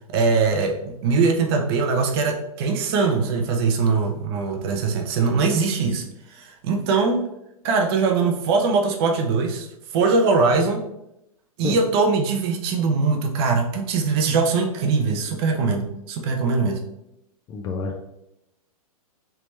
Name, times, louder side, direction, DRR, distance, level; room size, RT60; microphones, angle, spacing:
voice 1, 0.1-6.0 6.3-7.3 7.6-9.7 9.9-10.8 11.6-16.8, right 4 dB, 40° right, 3 dB, 0.7 m, -21 dB
voice 2, 17.5-18.0, left 4 dB, 20° left, 2 dB, 0.4 m, -28 dB
3.4 x 2.9 x 3.2 m, 0.84 s
figure-of-eight pair, 115°, 19 cm